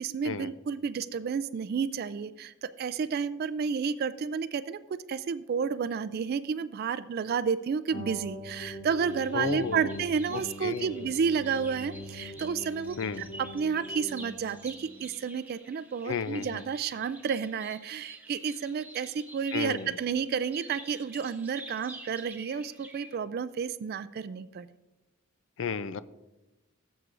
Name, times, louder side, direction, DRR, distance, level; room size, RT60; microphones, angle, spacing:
voice 1, 0.0-24.7, right 6 dB, 50° right, 15 dB, 0.3 m, -31 dB
sound 1, 7.9-15.0, left 1 dB, 40° left, 2.0 m, -43 dB
sound 2, 8.9-23.2, right 1 dB, 10° right, 0.9 m, -49 dB
voice 2, 9.3-10.0 10.3-11.1 13.0-13.3 16.1-16.6 19.5-20.0 25.6-26.0, left 5 dB, 65° left, 15 dB, 0.4 m, -33 dB
17.5 x 8.0 x 2.5 m, 1.1 s
head